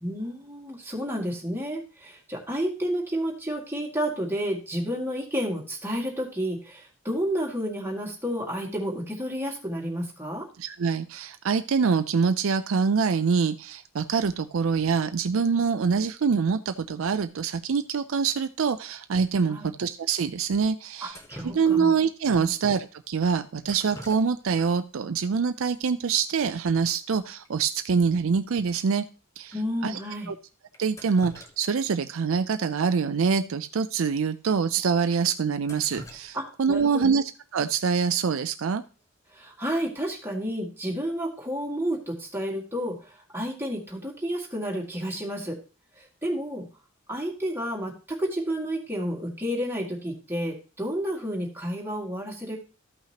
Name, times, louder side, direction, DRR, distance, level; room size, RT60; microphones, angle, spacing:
voice 1, 0.0-10.5 19.5-19.7 21.0-21.9 22.3-22.5 29.5-30.3 36.3-37.2 39.3-45.6 46.0-46.7 47.1-52.6, equal, 10° right, -2 dB, 2.1 m, -31 dB
voice 2, 10.6-21.2 21.4-29.0 29.4-29.5 29.8-30.0 30.3-30.4 30.8-37.2 37.5-38.8, right 5 dB, 65° right, 9 dB, 0.4 m, -25 dB
Drip, 21.1-22.1 23.6-24.7 25.0-25.1 26.0-26.1 26.3-26.6 26.9-27.0 27.4-27.5 28.0-28.1 28.6-28.7 29.4-29.6 30.7-31.9 32.3-32.4 33.7-33.8 34.2-34.3 34.8-34.9 35.4-37.0 39.0-39.3 39.7-40.1, equal, 15° left, 1.1 m, -46 dB
14.0 x 5.7 x 2.9 m, 0.34 s
head